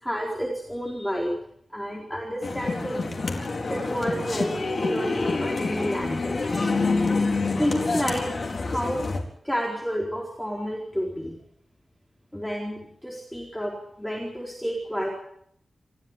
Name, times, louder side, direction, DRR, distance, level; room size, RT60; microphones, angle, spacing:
voice 1, 0.0-1.3 1.7-3.1 3.7-6.8 7.6-8.3 8.6-9.0 9.4-11.3 12.3-15.1, equal, 5° left, -1 dB, 4.4 m, -30 dB
sound 1, 2.4-9.2, left 3 dB, 50° left, 4.2 m, -27 dB
28.0 x 15.0 x 9.1 m, 0.67 s
wide cardioid pair, 155°, 0 cm